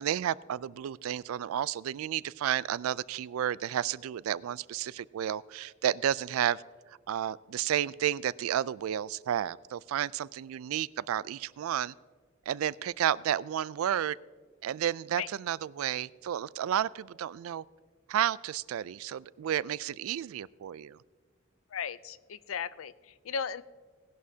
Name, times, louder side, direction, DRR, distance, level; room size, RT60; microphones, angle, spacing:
voice 1, 0.0-6.6 7.1-11.9 12.5-14.2 14.6-17.6 18.1-21.0, right 10 dB, 85° right, 20 dB, 0.3 m, -31 dB
voice 2, 21.7-23.6, left 6 dB, 75° left, 16 dB, 0.5 m, -36 dB
18.0 x 11.0 x 2.7 m, 1.5 s
head